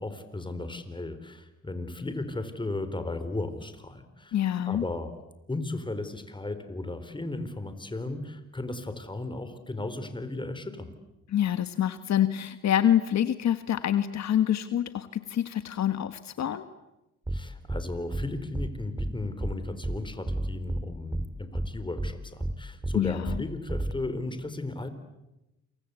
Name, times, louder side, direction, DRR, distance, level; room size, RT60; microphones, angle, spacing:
voice 1, 0.0-4.4 4.7-5.1 5.5-10.9 17.3-24.9, left 2 dB, 15° left, 10 dB, 4.0 m, -35 dB
voice 2, 4.3-4.8 11.3-16.6 22.9-23.4, left 10 dB, 65° left, 11 dB, 1.4 m, -26 dB
sound 1, 17.3-17.4 17.7-17.8 18.1-18.3 18.5-18.7 19.0-19.1 19.4-19.5 19.8-20.0 20.3-20.8 21.1-21.3 21.5-21.7 22.0-22.1 22.4-22.5 22.8-23.0 23.3-23.4 23.7-23.9, right 1 dB, 15° right, 2.0 m, -30 dB
28.5 x 25.0 x 8.2 m, 0.93 s
cardioid pair, 90°, 30 cm